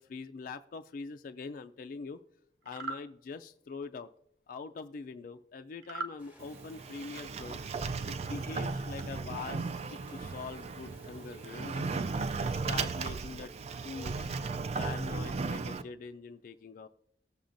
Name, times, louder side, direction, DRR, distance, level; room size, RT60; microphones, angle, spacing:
voice 1, 0.0-2.2 2.6-4.1 4.5-7.6 8.1-11.8 12.5-13.5 13.8-14.4 14.8-16.9, left 4 dB, 50° left, 8 dB, 0.3 m, -43 dB
sound 1, 2.6-3.0 5.8-6.2, right 3 dB, 75° right, 0.7 m, -38 dB
sound 2, 6.2-12.5, equal, 10° right, 1.2 m, -59 dB
Sliding door, 6.4-15.8, right 4 dB, 35° right, 0.3 m, -36 dB
17.0 x 7.1 x 2.6 m, 0.73 s
head